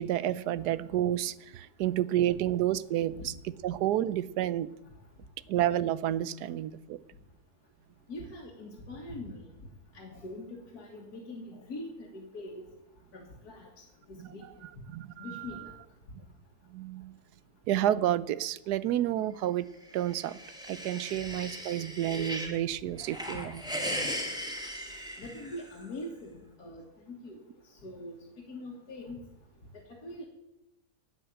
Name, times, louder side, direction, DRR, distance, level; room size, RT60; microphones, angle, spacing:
voice 1, 0.0-4.7 5.5-7.0 14.2-14.3 14.9-15.6 16.7-17.1 17.7-19.7 19.9-20.4 20.7-23.6, right 12 dB, 90° right, 18 dB, 1.2 m, -30 dB
voice 2, 8.1-9.7 9.9-12.7 13.1-13.7 14.1-14.4 15.2-15.7 25.2-28.1 28.5-29.2 30.0-30.2, left 1 dB, 75° left, -2 dB, 2.3 m, -43 dB
sound 1, 19.9-22.6 23.0-25.8, equal, 5° right, 2.0 m, -38 dB
11.5 x 8.3 x 8.8 m, 0.92 s
omnidirectional pair, 1.7 m